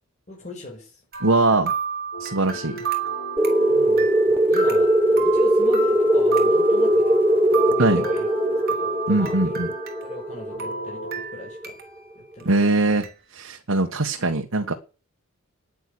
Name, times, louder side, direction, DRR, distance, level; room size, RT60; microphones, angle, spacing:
voice 1, 0.3-1.0 3.7-7.2 7.7-8.3 8.7-9.6 10.0-11.8 12.3-12.8, left 2 dB, 35° left, 5.3 m, -39 dB
sound 1, 1.1-10.3 10.6-12.0 12.4-12.5 13.0-13.1, right 6 dB, 45° right, 3.6 m, -32 dB
voice 2, 1.2-1.7 2.2-2.8 7.8-8.0 9.1-9.7 12.4-13.1 13.3-14.7, right 2 dB, 70° right, 1.4 m, -21 dB
sound 2, 2.1-11.2, left 2 dB, 75° left, 4.4 m, -37 dB
sound 3, 3.4-11.7, right 1 dB, 10° right, 1.0 m, -20 dB
10.0 x 9.1 x 9.5 m
head